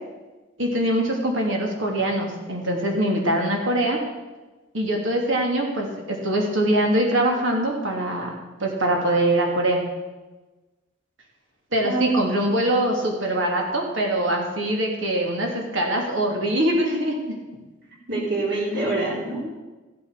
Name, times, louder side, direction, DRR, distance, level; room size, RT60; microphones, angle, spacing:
voice 1, 0.6-4.0 4.7-8.3 8.6-9.8 11.7-17.2, right 1 dB, 85° right, 1 dB, 2.8 m, -23 dB
voice 2, 11.8-12.2 18.1-19.4, right 2 dB, 65° right, -4 dB, 3.8 m, -25 dB
14.5 x 8.6 x 6.6 m, 1.2 s
head